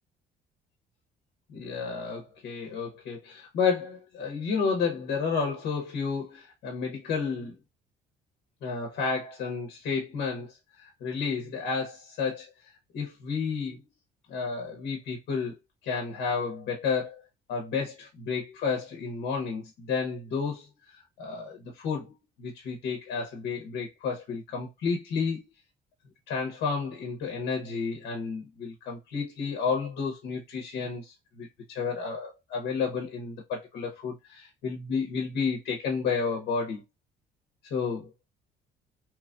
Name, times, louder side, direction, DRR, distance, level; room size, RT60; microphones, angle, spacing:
voice 1, 1.5-7.6 8.6-12.5 12.9-13.8 14.3-15.5 15.8-17.2 17.5-22.1 22.4-25.4 26.3-36.8 37.7-38.1, left 5 dB, 70° left, 0.9 m, -31 dB
3.0 x 2.5 x 2.3 m
cardioid pair, 110°, 17 cm